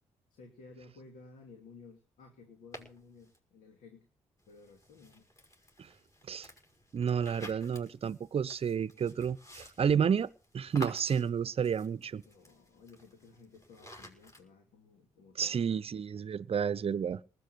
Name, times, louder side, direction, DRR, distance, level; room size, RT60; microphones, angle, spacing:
voice 1, 0.3-4.1 4.5-5.3 12.2-15.8, left 4 dB, 70° left, 2.9 m, -55 dB
sound 1, 2.7-3.4 4.4-14.4, equal, 25° left, 5.7 m, -52 dB
voice 2, 6.9-12.2 15.4-17.2, right 7 dB, 45° right, 0.7 m, -31 dB
19.5 x 8.2 x 6.2 m
hypercardioid pair, 45°, 13 cm